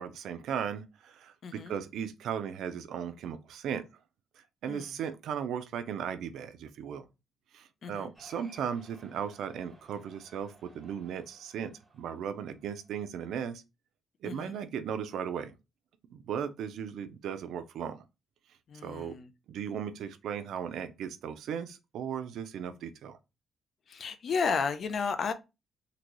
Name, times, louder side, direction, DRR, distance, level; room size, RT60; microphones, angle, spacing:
voice 1, 0.0-3.9 4.4-7.1 7.5-13.6 14.2-15.5 16.1-18.0 18.8-19.2 19.5-23.2, right 8 dB, 85° right, 0.4 m, -37 dB
voice 2, 1.4-1.7 4.7-5.0 7.8-8.1 14.2-14.5 18.7-19.3 23.9-25.3, left 5 dB, 50° left, 0.5 m, -33 dB
Cheering, 8.1-12.9, right 2 dB, 10° right, 1.2 m, -58 dB
3.9 x 2.2 x 3.0 m
cardioid pair, 155°, 0 cm